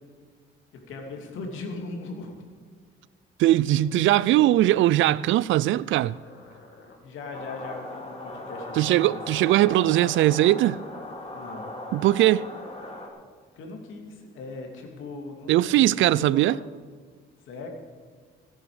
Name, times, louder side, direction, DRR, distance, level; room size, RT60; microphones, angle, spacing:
voice 1, 0.7-2.3 7.0-9.2 11.3-11.7 13.5-16.6 17.5-17.7, left 3 dB, 85° left, 2.5 m, -39 dB
voice 2, 3.4-6.2 8.8-10.8 11.9-12.5 15.5-16.6, right 14 dB, 75° right, 0.4 m, -20 dB
sound 1, 3.7-5.4 6.1-6.9 7.6-8.0 8.5-9.4 10.2-11.1 12.2-12.9, left 3 dB, 60° left, 3.2 m, -51 dB
sound 2, 7.3-13.1, left 2 dB, 30° left, 2.8 m, -39 dB
17.5 x 9.9 x 4.9 m
cardioid pair, 90°, 20 cm